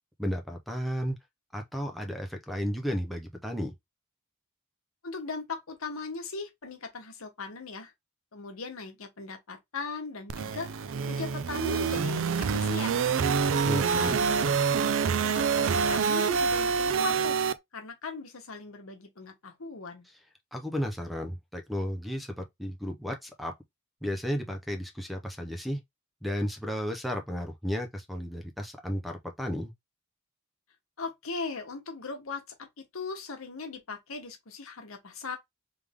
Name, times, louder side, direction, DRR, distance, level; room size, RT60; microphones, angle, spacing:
voice 1, 0.2-1.2 1.5-3.7 13.6-14.2 20.5-23.5 24.0-25.8 26.2-29.7, equal, ahead, 0.5 m, -33 dB
voice 2, 5.0-7.9 8.3-10.7 11.1-13.1 13.9-14.4 15.2-17.4 17.7-20.1 31.0-35.4, left 4 dB, 75° left, 1.2 m, -38 dB
sound 1, 10.3-17.5, right 5 dB, 65° right, 0.4 m, -26 dB
3.4 x 3.4 x 3.5 m
head